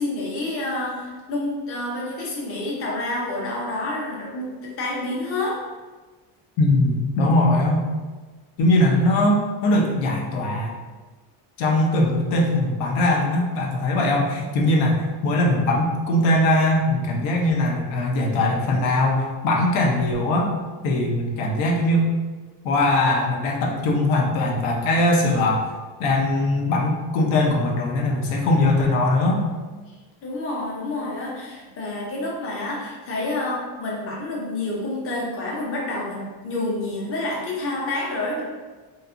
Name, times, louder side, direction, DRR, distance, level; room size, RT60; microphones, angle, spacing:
voice 1, 0.0-5.6 30.2-38.4, left 2 dB, 30° left, -3 dB, 0.6 m, -28 dB
voice 2, 6.6-7.9 8.6-10.7 11.6-20.5 20.8-22.1 22.6-25.7 26.0-29.4, left 1 dB, 85° left, 0 dB, 0.7 m, -21 dB
2.8 x 2.3 x 2.4 m, 1.3 s
cardioid pair, 150°, 46 cm